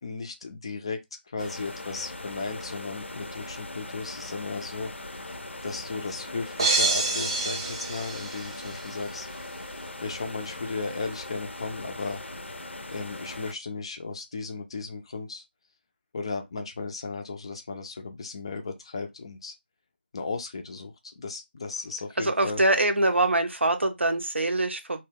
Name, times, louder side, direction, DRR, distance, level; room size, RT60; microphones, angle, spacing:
voice 1, 0.0-1.0 1.3-4.9 5.6-9.3 10.0-12.2 12.9-15.4 16.1-19.5 20.1-22.6, left 4 dB, 25° left, 0.4 m, -35 dB
sound 1, 1.4-13.5, left 2 dB, 85° left, 0.5 m, -40 dB
sound 2, 6.6-8.9, right 3 dB, 25° right, 0.5 m, -27 dB
voice 2, 22.2-25.0, right 2 dB, 85° right, 0.7 m, -24 dB
2.2 x 2.2 x 3.3 m
figure-of-eight pair, 165°, 6 cm